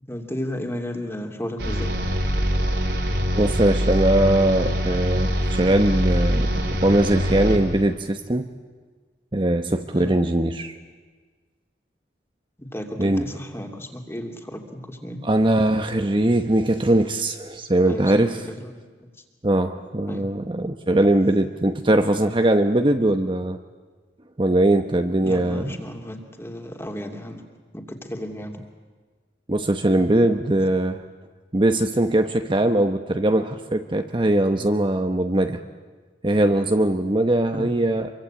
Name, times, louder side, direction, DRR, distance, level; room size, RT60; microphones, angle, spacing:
voice 1, 0.1-1.9 9.9-10.1 12.6-15.2 17.8-18.7 20.1-20.3 25.2-27.4 27.7-28.6 37.5-37.7, equal, 15° left, 4 dB, 2.8 m, -33 dB
sound 1, 1.6-7.9, equal, 70° right, 4.3 m, -24 dB
voice 2, 3.3-8.5 9.3-10.7 13.0-13.2 15.2-18.5 19.4-23.6 24.4-25.8 29.5-31.0 31.5-35.6 36.2-38.1, right 1 dB, 30° right, 7 dB, 0.9 m, -21 dB
26.5 x 23.5 x 8.9 m, 1.4 s
head